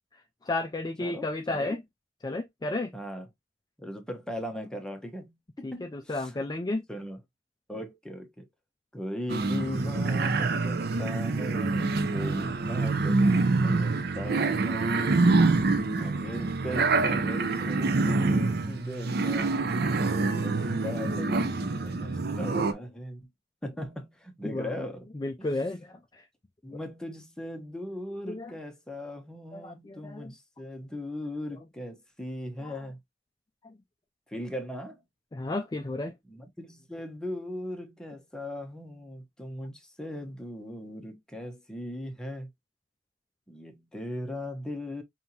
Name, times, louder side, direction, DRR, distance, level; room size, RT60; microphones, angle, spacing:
voice 1, 0.4-1.8 2.2-2.9 5.6-6.8 24.4-24.7 25.1-26.2 28.3-28.5 29.5-30.3 32.6-32.7 33.6-33.7 35.3-36.1, left 2 dB, 20° left, 0.4 m, -32 dB
voice 2, 1.0-1.8 2.9-3.3 3.8-6.4 6.9-7.2 7.7-8.5 8.9-15.0 15.8-23.3 23.6-25.1 25.4-25.5 26.6-33.0 34.3-35.0 36.3-42.5 43.5-45.0, left 1 dB, 5° left, 1.0 m, -38 dB
sound 1, 9.3-22.7, right 3 dB, 55° right, 0.7 m, -26 dB
5.4 x 2.8 x 2.8 m
head